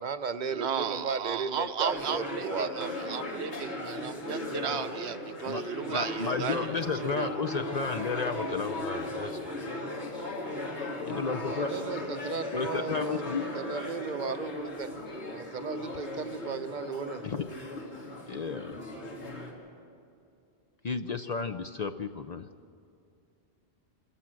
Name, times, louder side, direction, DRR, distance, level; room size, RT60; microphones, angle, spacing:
voice 1, 0.0-2.9 11.5-14.9 15.2-17.2, right 5 dB, 50° right, 10 dB, 0.7 m, -35 dB
voice 2, 0.5-6.7 7.2-7.3, right 7 dB, 75° right, 10 dB, 1.0 m, -34 dB
sound 1, 1.8-19.5, left 2 dB, 85° left, 2.6 m, -37 dB
voice 3, 5.9-9.5 11.0-11.7 12.0-12.1 12.5-13.4 17.2-17.6 18.3-18.8 20.8-22.5, left 5 dB, 50° left, 9 dB, 0.6 m, -33 dB
25.0 x 14.0 x 7.5 m, 2.5 s
omnidirectional pair, 1.1 m